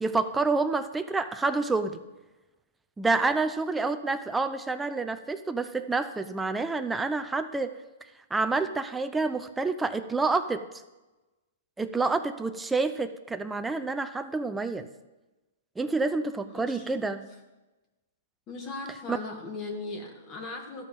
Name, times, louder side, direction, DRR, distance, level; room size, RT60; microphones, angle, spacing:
voice 1, 0.0-2.0 3.0-7.8 8.3-10.6 11.8-14.9 15.8-17.2 19.1-19.2, right 3 dB, 10° right, 9 dB, 0.6 m, -28 dB
voice 2, 15.9-17.2 18.5-20.9, left 3 dB, 30° left, 1 dB, 1.9 m, -39 dB
13.0 x 5.4 x 7.4 m, 1.1 s
hypercardioid pair, 140°, 0 cm